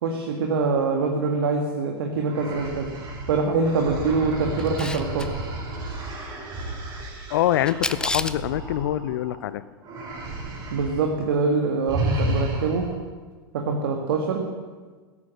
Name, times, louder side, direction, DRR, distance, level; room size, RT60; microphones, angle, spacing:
voice 1, 0.0-2.9 3.3-5.3 10.7-12.8 13.5-14.4, right 4 dB, 65° right, 2 dB, 1.8 m, -24 dB
sound 1, 2.2-9.4 9.8-11.1 11.3-11.5 11.9-13.0, right 1 dB, 35° right, 5.0 m, -32 dB
Camera, 4.6-5.3 7.7-8.5, left 2 dB, 5° left, 0.6 m, -29 dB
voice 2, 7.3-9.6, left 12 dB, 60° left, 16 dB, 0.7 m, -24 dB
16.0 x 9.6 x 7.6 m, 1.4 s
figure-of-eight pair, 90°, 13 cm